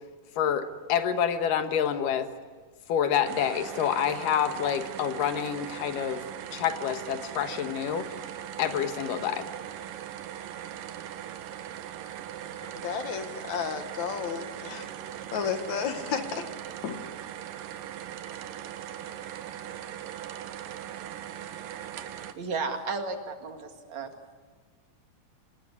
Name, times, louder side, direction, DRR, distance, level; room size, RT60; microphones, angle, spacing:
voice 1, 0.4-2.3 2.9-6.2 6.5-8.1 8.6-9.5, left 8 dB, 80° left, 9 dB, 2.9 m, -27 dB
sound 1, 3.2-22.3, right 10 dB, 85° right, 2.8 m, -40 dB
voice 2, 12.6-14.9 15.3-16.5 16.8-17.1, left 7 dB, 65° left, 8 dB, 2.6 m, -32 dB
voice 3, 22.3-24.1, right 4 dB, 60° right, 6 dB, 3.1 m, -33 dB
27.0 x 20.0 x 9.7 m, 1.5 s
omnidirectional pair, 3.8 m